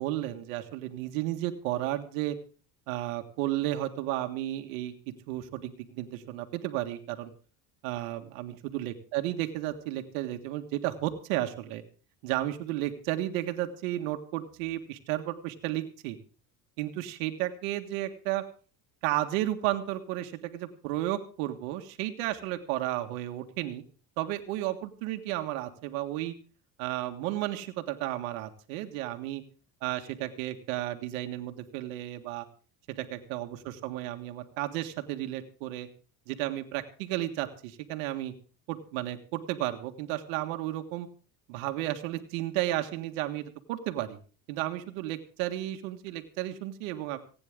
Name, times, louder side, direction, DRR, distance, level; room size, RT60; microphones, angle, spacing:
voice 1, 0.0-2.4 2.9-4.9 5.3-7.3 7.8-11.8 12.2-16.2 16.8-18.4 19.0-23.8 24.2-26.3 26.8-29.4 29.8-32.5 33.1-35.9 36.3-38.3 38.7-41.1 41.5-44.2 44.5-47.2, right 14 dB, 90° right, 6 dB, 1.8 m, -33 dB
27.5 x 9.8 x 3.7 m, 0.38 s
supercardioid pair, 105°, 40 cm